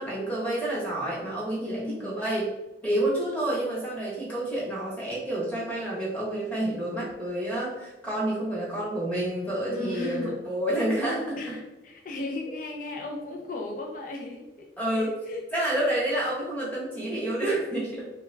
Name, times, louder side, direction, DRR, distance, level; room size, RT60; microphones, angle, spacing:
voice 1, 0.0-2.5 2.8-11.6 14.8-15.1 15.5-18.0, right 1 dB, 5° left, -6 dB, 1.0 m, -29 dB
voice 2, 1.6-2.2 9.7-10.4 11.4-14.7 14.9-15.4, left 2 dB, 45° left, 1 dB, 0.4 m, -35 dB
3.2 x 2.3 x 3.1 m, 1.0 s
head